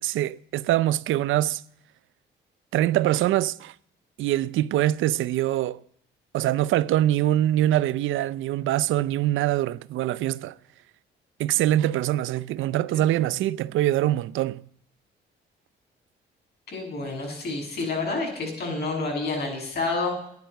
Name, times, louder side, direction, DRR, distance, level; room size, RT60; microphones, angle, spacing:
voice 1, 0.0-1.6 2.7-3.7 4.2-5.8 6.3-10.5 11.4-14.6, right 13 dB, 80° right, 0.6 m, -24 dB
voice 2, 16.7-20.1, left 3 dB, 55° left, 7.6 m, -29 dB
11.5 x 11.0 x 8.1 m
cardioid pair, 90°, 20 cm